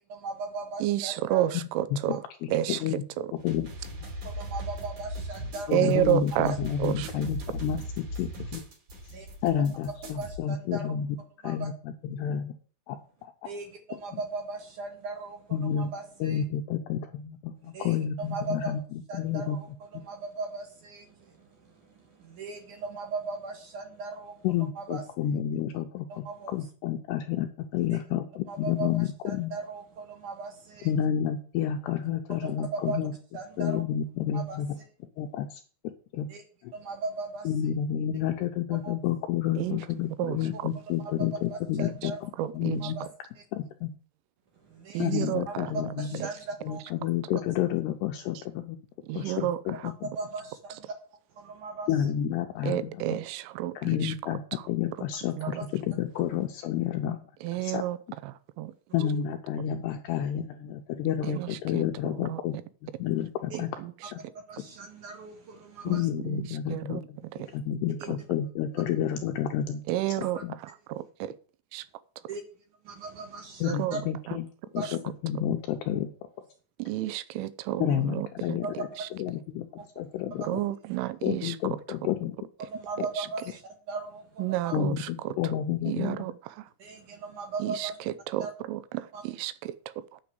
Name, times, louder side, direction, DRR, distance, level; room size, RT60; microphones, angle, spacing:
voice 1, 0.1-1.4 2.1-2.2 4.2-5.8 6.4-6.6 9.1-9.3 10.2-11.0 11.4-11.7 13.4-16.4 17.6-18.7 19.1-19.7 19.9-24.5 24.8-25.0 26.1-26.7 27.9-28.0 28.5-28.9 29.3-30.9 32.3-33.0 33.3-33.8 34.3-34.6 36.3-36.4 36.7-37.5 38.8-38.9 41.5-42.2 42.8-43.1 44.5-45.1 45.5-46.8 49.1-49.2 50.1-50.9 51.3-51.9 55.4-55.5 58.9-59.1 63.5-63.6 64.5-66.1 67.4-67.6 68.0-68.1 70.2-70.3 72.3-72.4 72.8-74.0 74.8-74.9 79.8-79.9 80.4-80.5 82.6-84.7 86.8-88.0 88.4-88.5 89.1-89.2, right 3 dB, 60° right, 2.3 m, -38 dB
voice 2, 0.8-2.2 2.5-2.8 3.2-3.3 5.7-6.5 6.8-7.1 39.6-39.8 40.2-40.4 41.8-42.1 42.4-42.9 44.9-45.7 46.2-46.3 49.1-49.6 52.6-54.1 54.5-54.6 55.4-55.6 57.4-58.0 58.2-58.7 61.3-62.4 63.5-63.9 65.9-66.0 66.2-66.4 66.7-67.0 67.3-67.5 68.1-68.2 69.9-70.4 70.9-71.4 71.7-71.9 73.7-74.0 74.3-74.4 74.8-75.0 76.8-78.6 79.0-79.1 80.4-81.6 83.2-83.3 84.4-85.4 85.9-86.7 87.6-90.2, right 13 dB, 85° right, 3.2 m, -31 dB
voice 3, 2.4-3.0 3.4-3.7 4.0-4.1 5.7-8.6 9.4-11.2 11.4-12.5 12.9-13.5 14.1-14.2 15.5-15.9 16.2-19.6 24.4-29.5 30.8-33.1 33.6-34.7 35.2-35.6 36.1-36.3 36.6-36.7 37.5-43.0 43.5-43.9 45.0-46.2 46.6-48.8 49.1-50.1 51.9-53.2 53.8-54.4 54.7-57.3 57.6-57.8 58.9-62.6 62.8-63.7 64.1-64.2 65.8-69.8 70.4-70.5 73.6-74.5 74.7-74.8 75.2-76.1 77.8-78.9 79.1-80.6 81.2-82.4 84.7-86.2, left 9 dB, 80° left, 2.5 m, -30 dB
sound 1, 3.4-10.4, equal, 45° right, 3.8 m, -39 dB
9.6 x 6.1 x 7.9 m
omnidirectional pair, 5.5 m